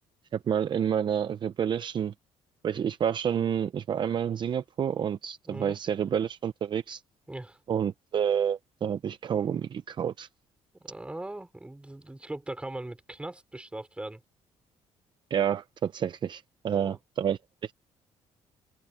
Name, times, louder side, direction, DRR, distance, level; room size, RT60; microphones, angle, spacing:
voice 1, 0.3-2.1 2.6-7.0 7.7-10.3 15.3-17.7, right 8 dB, 45° right, 0.7 m, -29 dB
voice 2, 5.5-5.8 7.3-7.6 10.8-14.2 16.7-17.0, right 1 dB, 10° right, 5.0 m, -40 dB
open air
cardioid pair, 120°, 11 cm